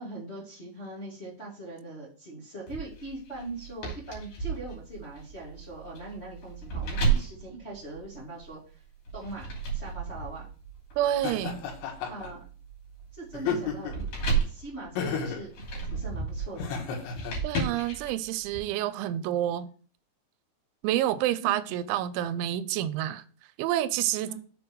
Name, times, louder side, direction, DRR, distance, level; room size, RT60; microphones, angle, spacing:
voice 1, 0.0-8.8 9.1-10.5 12.1-12.4 13.1-14.1 14.4-15.5 15.8-16.9 21.4-21.8 24.3-24.4, right 2 dB, 20° left, 1.7 m, -41 dB
sound 1, 2.7-8.5 9.1-18.6, right 5 dB, 50° left, 3.9 m, -33 dB
voice 2, 11.0-11.6 17.4-19.7 20.8-23.2 23.6-24.3, right 12 dB, 90° right, 3.0 m, -28 dB
Laughter, 11.2-12.3 13.3-14.1 15.0-15.5 16.6-17.3, left 6 dB, 80° left, 3.7 m, -32 dB
7.0 x 5.3 x 4.6 m
omnidirectional pair, 5.3 m